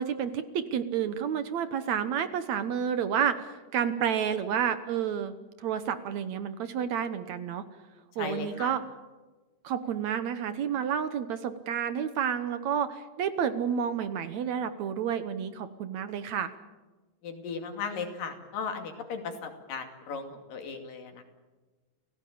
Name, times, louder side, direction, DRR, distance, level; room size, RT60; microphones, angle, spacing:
voice 1, 0.0-7.6 8.2-8.8 9.6-16.5, right 8 dB, 65° right, 11 dB, 2.1 m, -30 dB
voice 2, 8.2-8.8 17.2-21.2, left 5 dB, 80° left, 5 dB, 4.2 m, -37 dB
29.5 x 17.0 x 8.6 m, 1.2 s
omnidirectional pair, 3.9 m